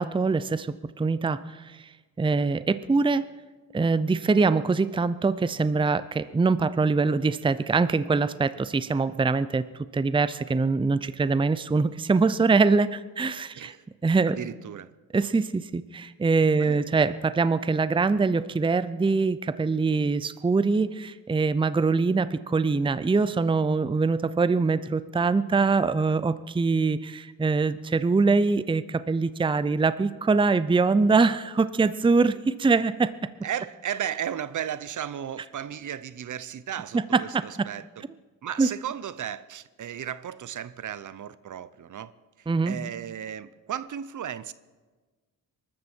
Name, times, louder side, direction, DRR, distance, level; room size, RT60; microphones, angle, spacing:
voice 1, 0.0-1.8 2.2-3.3 3.7-9.6 9.9-13.7 14.0-14.4 15.1-33.1 36.9-37.2 38.6-38.7 42.5-42.7, right 4 dB, 15° right, 15 dB, 0.6 m, -23 dB
voice 2, 13.5-13.8 14.2-14.9 16.6-16.9 33.4-38.0 38.4-42.1 42.4-44.5, right 9 dB, 60° right, 16 dB, 0.7 m, -35 dB
22.5 x 13.0 x 4.5 m, 1.3 s
cardioid pair, 75°, 35 cm